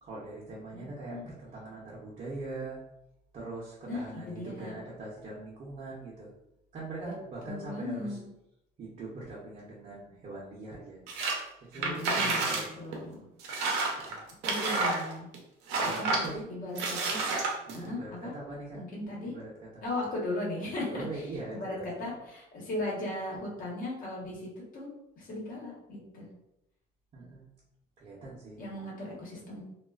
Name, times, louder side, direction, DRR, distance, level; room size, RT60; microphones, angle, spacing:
voice 1, 0.0-2.8 3.3-6.3 6.7-8.2 8.8-11.0 11.7-13.2 14.1-14.2 15.8-16.5 17.7-18.8 19.3-19.8 20.9-21.9 27.1-27.4 28.0-28.6, right 2 dB, 45° right, -6 dB, 0.7 m, -42 dB
voice 2, 3.9-4.7 7.1-7.2 7.4-8.2 11.7-13.2 14.4-15.3 15.9-16.2 16.5-17.2 17.7-18.3 18.7-19.3 19.8-24.9 25.2-26.2 28.6-29.6, left 1 dB, 55° left, -3 dB, 1.1 m, -37 dB
sound 1, 11.1-11.4 11.7-12.7 12.9-13.0 13.4-15.4 15.7-16.3 16.7-17.8, right 3 dB, 85° right, 0.6 m, -29 dB
2.3 x 2.3 x 2.3 m, 0.84 s
cardioid pair, 110°, 17 cm